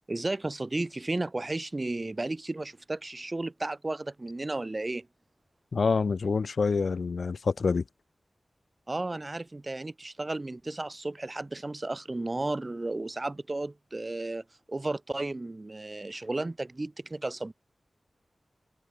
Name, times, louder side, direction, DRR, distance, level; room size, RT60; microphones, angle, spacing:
voice 1, 0.1-5.1 8.9-17.5, right 2 dB, 35° right, 2.1 m, -33 dB
voice 2, 5.7-7.8, left 4 dB, 80° left, 1.2 m, -26 dB
wide cardioid pair, 75°, 0 cm